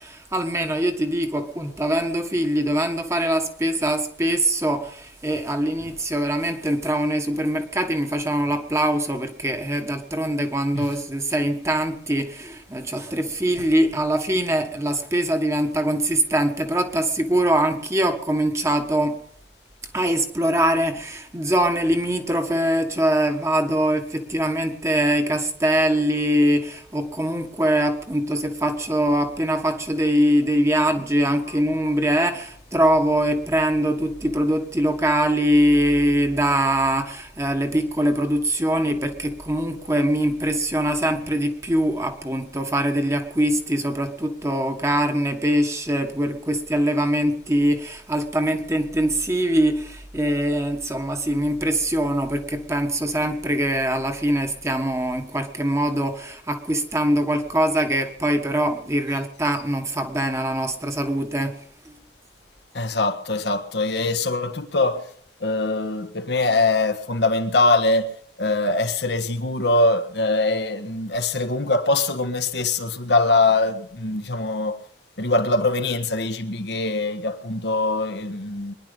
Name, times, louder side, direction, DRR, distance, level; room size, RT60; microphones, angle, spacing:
voice 1, 0.0-19.2 19.9-61.6 61.8-62.0, right 1 dB, 15° right, 1.4 m, -23 dB
voice 2, 62.7-65.0 65.4-68.1 68.4-74.8 75.2-78.7, left 2 dB, 75° left, 1.4 m, -22 dB
23.0 x 10.5 x 5.4 m
head